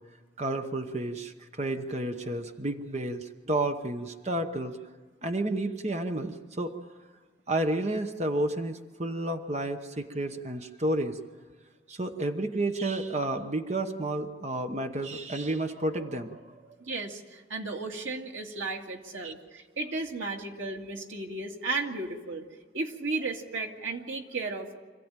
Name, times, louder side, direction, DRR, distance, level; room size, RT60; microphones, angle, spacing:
voice 1, 0.4-4.8 5.2-6.8 7.5-11.2 11.9-16.6 19.2-19.3, right 1 dB, 35° right, 6 dB, 1.0 m, -31 dB
voice 2, 16.8-22.5 22.7-24.8, right 3 dB, 85° right, 1 dB, 2.2 m, -34 dB
26.0 x 15.0 x 9.0 m, 1.5 s
head